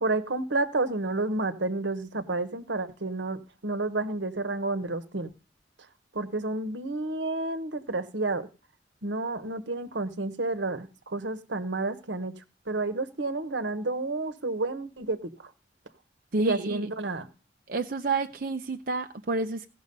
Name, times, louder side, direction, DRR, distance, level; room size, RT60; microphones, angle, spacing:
voice 1, 0.0-5.3 6.1-8.5 9.0-15.5 16.4-17.3, right 2 dB, 85° right, 1.2 m, -30 dB
voice 2, 16.3-16.8 17.7-19.7, right 3 dB, 50° right, 0.7 m, -29 dB
16.5 x 6.2 x 5.4 m
head